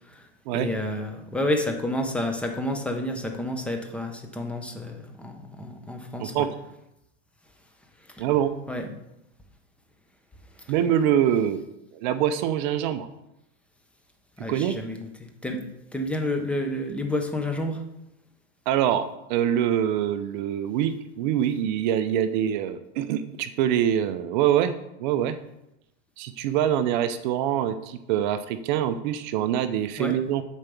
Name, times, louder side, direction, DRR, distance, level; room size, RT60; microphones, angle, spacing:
voice 1, 0.5-6.5 8.7-8.8 14.4-15.6 15.9-17.8 30.0-30.1, left 1 dB, 5° left, 4 dB, 0.7 m, -30 dB
voice 2, 8.2-8.5 10.7-11.6 11.9-13.1 14.5-14.8 18.7-24.7 25.0-25.4 26.2-30.4, right 10 dB, 45° right, 11 dB, 0.5 m, -24 dB
7.3 x 4.5 x 6.9 m, 0.87 s
supercardioid pair, 150°, 33 cm